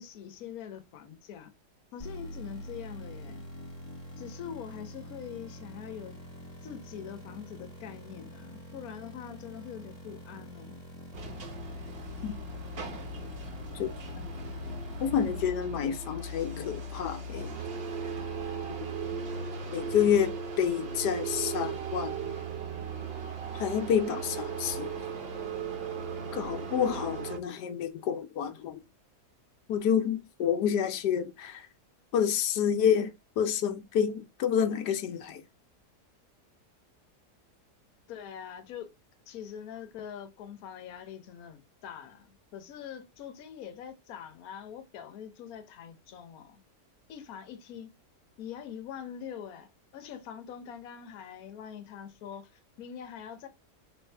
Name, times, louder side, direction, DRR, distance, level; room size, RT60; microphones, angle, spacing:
voice 1, 0.0-1.5 1.9-3.4 4.2-6.2 6.6-10.8 32.6-32.8 38.1-38.9 39.3-46.6 47.1-47.9 48.4-53.5, left 8 dB, 70° left, 1.1 m, -43 dB
sound 1, 2.0-15.5, equal, 25° left, 1.2 m, -45 dB
sound 2, 11.1-27.4, right 4 dB, 45° right, 0.8 m, -37 dB
voice 2, 15.0-17.6 18.8-18.9 19.7-22.1 23.5-24.9 26.3-28.8 29.7-31.7 32.1-33.1 33.4-35.4, left 8 dB, 90° left, 1.2 m, -29 dB
3.9 x 2.6 x 3.3 m
omnidirectional pair, 1.7 m